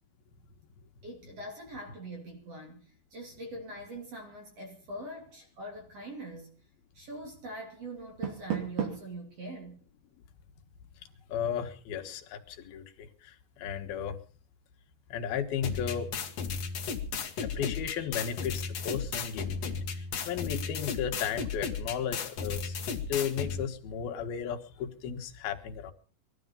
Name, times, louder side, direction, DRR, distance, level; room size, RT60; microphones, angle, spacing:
voice 1, 1.0-6.6 6.9-9.8, right 1 dB, 45° right, 2 dB, 3.7 m, -43 dB
Door, 8.0-9.2, right 9 dB, 85° right, 4.4 m, -35 dB
voice 2, 11.3-14.2 15.1-16.1 17.4-25.9, left 8 dB, 90° left, 5 dB, 3.3 m, -35 dB
sound 1, 15.6-23.6, left 5 dB, 50° left, 2.4 m, -35 dB
21.0 x 13.0 x 5.3 m, 0.41 s
omnidirectional pair, 4.2 m